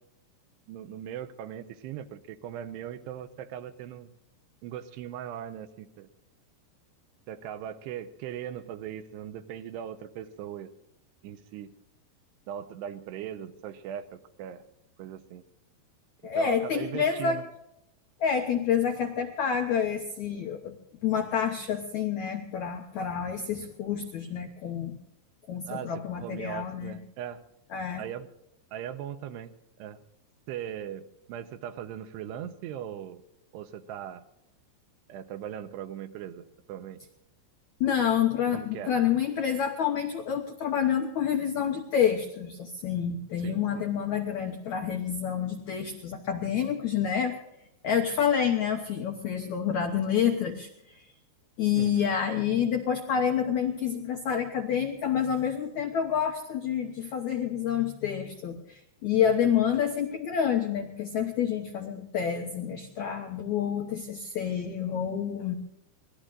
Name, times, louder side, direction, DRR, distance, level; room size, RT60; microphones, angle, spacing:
voice 1, 0.7-4.1 4.6-6.1 7.3-10.7 11.2-11.7 12.5-14.6 15.0-15.4 16.3-17.4 25.7-27.4 28.0-28.3 28.7-30.0 30.5-33.2 33.5-34.2 35.1-37.0 38.5-38.9 43.4-43.9 51.8-52.1, right 10 dB, 80° right, 10 dB, 2.9 m, -39 dB
voice 2, 16.2-17.4 18.2-20.8 21.0-25.0 25.5-27.0 27.7-28.0 37.8-47.4 47.8-51.0 51.6-65.6, left 8 dB, 85° left, 4 dB, 1.6 m, -28 dB
25.0 x 18.5 x 2.5 m, 0.86 s
omnidirectional pair, 5.0 m